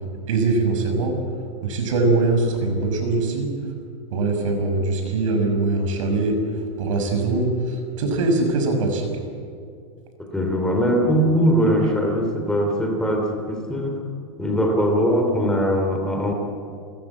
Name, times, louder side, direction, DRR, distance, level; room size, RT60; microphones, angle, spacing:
voice 1, 0.3-1.2 1.6-3.5 4.1-6.4 6.8-7.5 8.0-9.1 11.8-11.9, right 3 dB, 85° right, 4 dB, 6.0 m, -22 dB
voice 2, 10.3-14.0 14.4-16.3, equal, 5° left, 2 dB, 3.0 m, -21 dB
29.0 x 15.0 x 8.5 m, 2.4 s
supercardioid pair, 160°, 16 cm